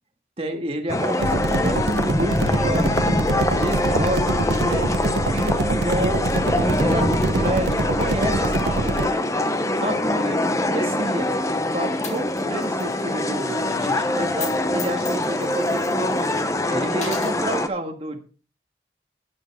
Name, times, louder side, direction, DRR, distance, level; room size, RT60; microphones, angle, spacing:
voice 1, 0.4-3.0 3.5-9.2 9.8-11.3 11.7-16.2 16.7-18.3, right 1 dB, 35° right, 4 dB, 1.7 m, -29 dB
sound 1, 0.9-17.7, left 1 dB, 20° left, 0.8 m, -24 dB
sound 2, 1.2-9.1, right 2 dB, 80° right, 0.9 m, -25 dB
Coin (dropping), 12.0-12.9 13.2-13.3 14.3-14.5 14.8-16.4 16.9-17.4, left 6 dB, 40° left, 2.0 m, -36 dB
12.0 x 9.7 x 3.5 m, 0.36 s
head